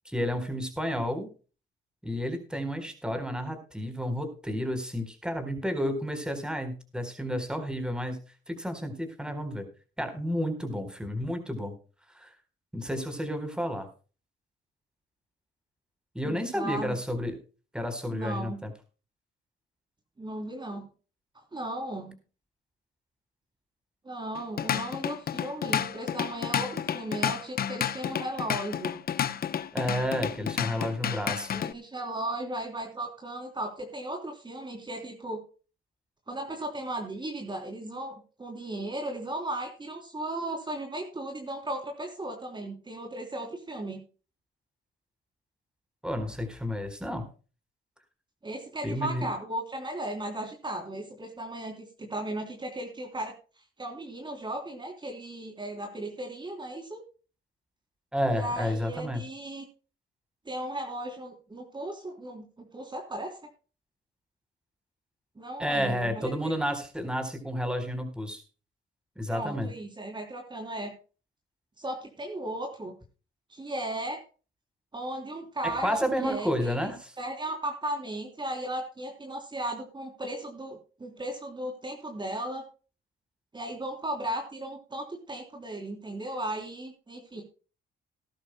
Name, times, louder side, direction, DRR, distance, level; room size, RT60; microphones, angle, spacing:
voice 1, 0.0-1.3 2.0-8.2 8.5-9.6 10.0-11.7 12.1-12.3 12.7-13.9 16.1-17.4 17.7-18.7 29.7-31.5 46.0-47.2 48.8-49.3 58.1-59.2 65.6-68.4 69.2-69.7 75.6-77.1, equal, 5° right, 7 dB, 4.2 m, -31 dB
voice 2, 16.2-17.0 18.1-18.6 20.2-20.9 21.3-22.1 24.0-29.0 31.5-35.4 36.3-44.0 48.4-53.3 53.8-57.0 58.3-59.6 60.4-63.4 65.4-66.6 69.3-70.9 71.8-72.9 73.5-74.2 74.9-76.9 77.2-82.6 83.5-87.4, right 1 dB, 25° right, 2 dB, 3.3 m, -36 dB
Drum kit / Drum, 24.3-31.7, left 9 dB, 50° left, 0.8 m, -31 dB
19.5 x 11.5 x 2.2 m, 0.36 s
cardioid pair, 90°, 20 cm